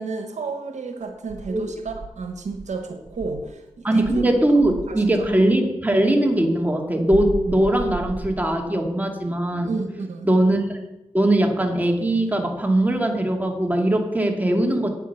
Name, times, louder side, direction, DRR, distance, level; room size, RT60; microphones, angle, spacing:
voice 1, 0.0-4.2 4.5-5.0 9.6-10.3, right 4 dB, 85° right, 6 dB, 1.2 m, -32 dB
Insect, 1.3-3.5 4.0-5.4 7.1-8.8, right 4 dB, 40° right, 1.2 m, -35 dB
voice 2, 3.8-9.8 10.2-10.8 11.1-14.9, right 1 dB, 15° right, 2 dB, 2.3 m, -20 dB
9.2 x 8.4 x 7.0 m, 0.98 s
cardioid pair, 50°, 12 cm